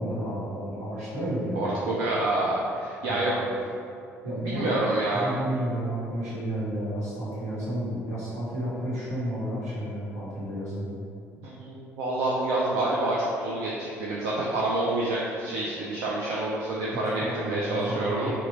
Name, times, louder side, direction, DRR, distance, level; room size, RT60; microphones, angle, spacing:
voice 1, 0.0-1.7 3.1-3.5 4.2-10.9 16.9-18.3, right 1 dB, 80° right, -10 dB, 1.1 m, -32 dB
voice 2, 1.6-3.3 4.4-5.3 11.4-18.3, right 2 dB, 65° right, -6 dB, 0.4 m, -28 dB
2.9 x 2.3 x 3.9 m, 2.5 s
figure-of-eight pair, 50°, 8 cm